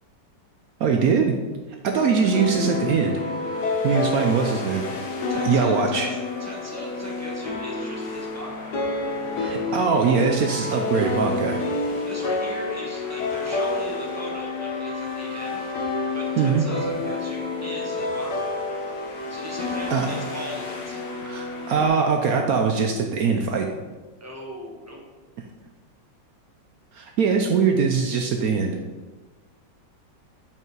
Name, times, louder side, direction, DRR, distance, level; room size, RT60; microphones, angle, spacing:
voice 1, 0.8-1.4 1.8-3.2 3.8-4.8 5.4-6.1 9.4-11.6 16.4-16.6 19.9-20.1 21.3-23.7 26.9-28.8, right 5 dB, 70° right, 3 dB, 0.9 m, -22 dB
sound 1, 1.9-21.9, left 3 dB, 65° left, 1.4 m, -29 dB
voice 2, 5.3-8.8 12.0-18.6 19.3-21.0 24.1-25.0, equal, 10° right, -2 dB, 1.0 m, -38 dB
5.6 x 5.4 x 4.6 m, 1.2 s
omnidirectional pair, 2.0 m